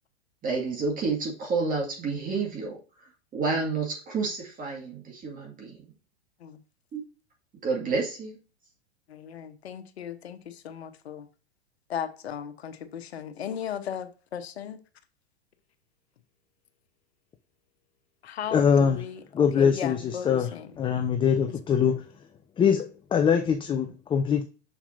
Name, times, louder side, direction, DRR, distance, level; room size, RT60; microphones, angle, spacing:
voice 1, 0.4-2.8 3.3-5.8 6.9-7.0 7.6-8.4, right 4 dB, 25° right, 2.1 m, -29 dB
voice 2, 9.1-11.3 11.9-14.8 18.2-19.2 19.6-20.7 21.7-22.0, left 8 dB, 70° left, 1.1 m, -36 dB
voice 3, 18.5-19.0 19.3-20.5 20.8-22.0 22.6-24.4, left 7 dB, 15° left, 0.6 m, -23 dB
7.2 x 6.6 x 2.6 m
hypercardioid pair, 100°, 33 cm